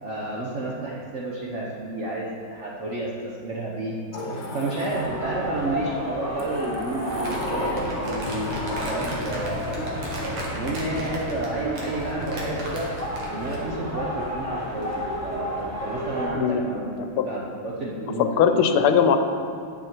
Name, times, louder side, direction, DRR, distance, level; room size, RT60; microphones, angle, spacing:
voice 1, 0.0-4.0 4.5-10.1 10.5-12.9 13.3-17.0 17.2-18.6, right 2 dB, 55° right, -4 dB, 0.8 m, -31 dB
Sliding door, 4.1-5.6 6.4-11.0, left 1 dB, 60° left, 1.9 m, -35 dB
sound 1, 4.9-16.3, equal, 10° right, 1.1 m, -32 dB
Crumpling crinkling, 7.1-13.7, right 1 dB, 85° right, 2.4 m, -35 dB
voice 2, 16.3-16.7 17.0-17.2 18.2-19.2, left 7 dB, 90° left, 8 dB, 1.5 m, -20 dB
9.5 x 7.5 x 4.4 m, 2.3 s
omnidirectional pair, 2.3 m